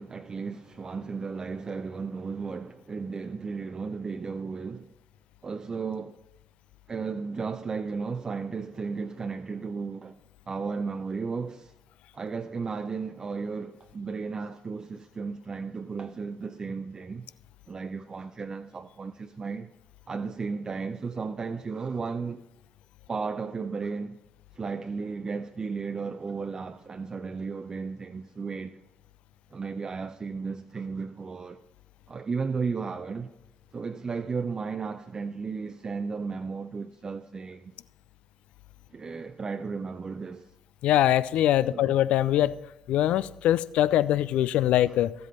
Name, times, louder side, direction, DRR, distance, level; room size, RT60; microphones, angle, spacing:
voice 1, 0.0-4.9 5.4-6.2 6.9-10.2 10.5-11.7 12.1-17.3 17.7-19.7 20.1-22.4 23.1-24.2 24.5-28.8 29.5-31.6 32.1-33.3 33.7-37.7 38.9-40.5 41.7-42.0, right 5 dB, 35° right, 0.5 m, -34 dB
voice 2, 40.8-42.6 42.9-45.1, left 12 dB, 70° left, 0.4 m, -23 dB
13.0 x 7.7 x 5.4 m
hypercardioid pair, 50°, 2 cm